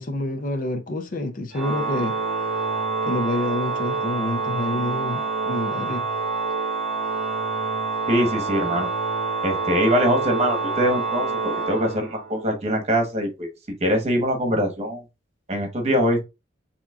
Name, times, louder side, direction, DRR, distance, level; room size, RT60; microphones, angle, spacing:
voice 1, 0.0-2.2 3.1-6.0, left 1 dB, 45° left, 0.6 m, -28 dB
Organ, 1.5-12.4, right 4 dB, 5° right, 2.9 m, -27 dB
voice 2, 8.1-8.9 9.4-13.5 13.8-15.0 15.5-16.2, equal, 35° right, 1.2 m, -23 dB
7.1 x 2.9 x 2.4 m
head